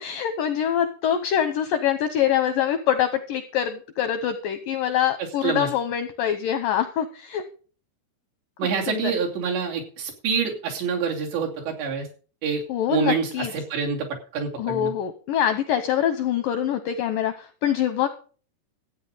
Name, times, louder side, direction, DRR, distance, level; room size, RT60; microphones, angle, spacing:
voice 1, 0.0-7.4 8.9-9.1 12.7-13.5 14.6-18.1, left 9 dB, 80° left, 9 dB, 2.0 m, -24 dB
voice 2, 5.2-5.7 8.6-12.1 12.4-12.6 12.9-14.1 14.3-14.9, right 6 dB, 80° right, -1 dB, 4.9 m, -26 dB
14.5 x 8.9 x 5.0 m, 0.41 s
omnidirectional pair, 4.9 m